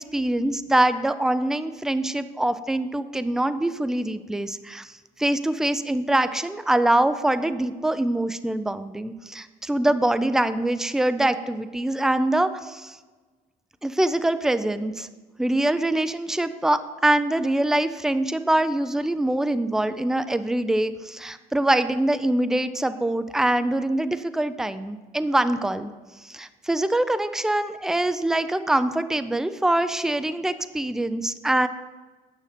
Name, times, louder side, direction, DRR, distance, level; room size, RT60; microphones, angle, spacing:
voice 1, 0.0-4.9 5.2-13.0 13.8-15.1 15.4-25.9 26.3-31.7, right 1 dB, 5° right, 12 dB, 0.4 m, -24 dB
9.2 x 6.4 x 5.0 m, 1.3 s
cardioid pair, 110°, 17 cm